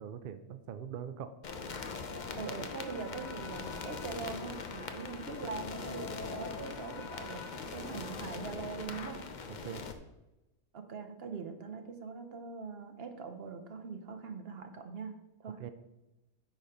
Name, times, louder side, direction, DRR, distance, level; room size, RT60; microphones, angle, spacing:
voice 1, 0.0-1.3 9.5-9.8 15.6-15.7, right 8 dB, 75° right, 10 dB, 0.5 m, -42 dB
sound 1, 1.4-9.9, left 4 dB, 45° left, 0.6 m, -41 dB
voice 2, 2.4-9.2 10.7-15.1 15.4-15.7, right 5 dB, 45° right, 6 dB, 1.0 m, -42 dB
9.3 x 4.4 x 5.1 m, 0.98 s
omnidirectional pair, 1.5 m